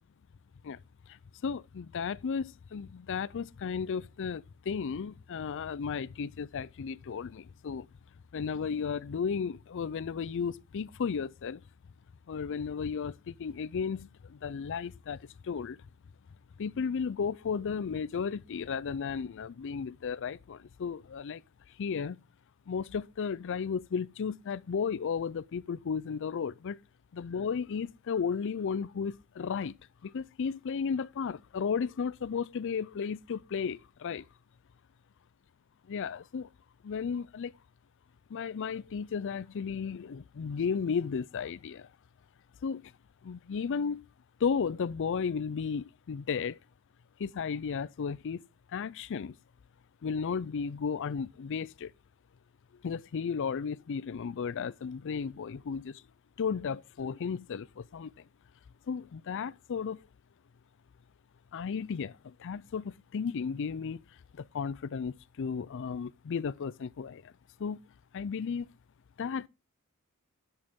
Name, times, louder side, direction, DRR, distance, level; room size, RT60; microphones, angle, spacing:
voice 1, 1.1-7.9 8.3-11.6 12.3-15.8 16.6-21.4 21.8-22.2 22.7-26.8 27.1-29.8 30.0-34.3 35.9-36.5 36.8-37.5 38.3-41.9 42.6-42.9 43.2-44.0 44.4-46.6 47.2-48.4 48.7-49.4 50.0-51.9 52.8-56.0 56.4-58.1 58.9-60.0 61.5-64.0 64.3-67.3 67.6-67.8 68.1-68.7 69.2-69.5, left 6 dB, 55° left, 0.4 m, -34 dB
11.0 x 7.9 x 3.6 m
head